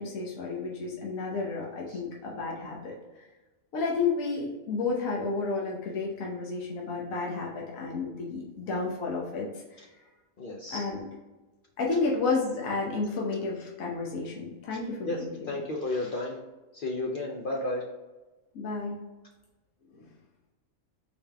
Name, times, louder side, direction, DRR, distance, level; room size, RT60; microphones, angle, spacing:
voice 1, 0.0-3.3 3.7-9.5 10.7-11.0 11.8-15.6 18.5-19.0 19.9-20.0, left 4 dB, 75° left, -2 dB, 1.3 m, -31 dB
voice 2, 10.4-10.9 15.0-15.2 15.5-16.4 16.7-17.8, left 2 dB, 55° left, -1 dB, 0.6 m, -32 dB
4.4 x 3.5 x 3.4 m, 1.1 s
omnidirectional pair, 1.5 m